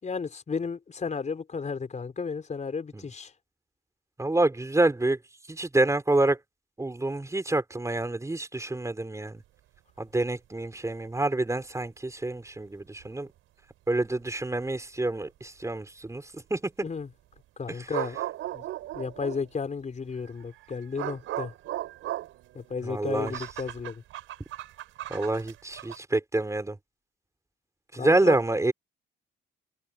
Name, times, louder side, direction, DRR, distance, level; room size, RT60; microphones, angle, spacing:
voice 1, 0.0-3.3 16.8-17.1 17.6-18.2 18.5-18.6 18.9-21.5 22.5-24.0 28.0-28.4, left 5 dB, 35° left, 5.0 m, -33 dB
voice 2, 4.2-5.2 5.5-6.4 6.8-9.4 10.0-13.3 13.9-16.9 17.7-17.9 22.8-23.4 25.1-26.8 27.9-28.7, right 2 dB, 15° right, 4.7 m, -27 dB
sound 1, 13.0-13.1 14.0-14.1 17.9-19.5 20.1-26.0, right 14 dB, 90° right, 6.1 m, -37 dB
cardioid pair, 90°, 20 cm